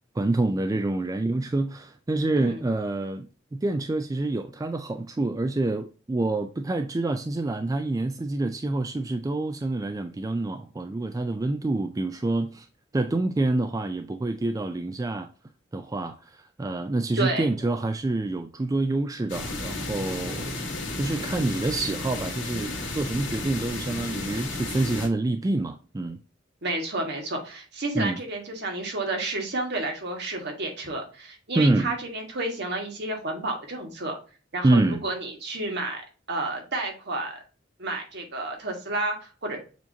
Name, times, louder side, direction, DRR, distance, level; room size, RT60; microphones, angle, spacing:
voice 1, 0.1-12.7 12.9-15.3 15.7-20.7 20.9-26.2 28.0-28.2 31.6-31.9 34.6-35.0, right 2 dB, 20° right, 0.3 m, -27 dB
sound 1, 19.3-25.1, left 2 dB, 80° left, 1.7 m, -33 dB
voice 2, 26.6-34.2 34.5-36.0 36.3-37.4 37.8-39.6, right 2 dB, 60° right, 1.5 m, -31 dB
6.9 x 2.9 x 2.7 m
head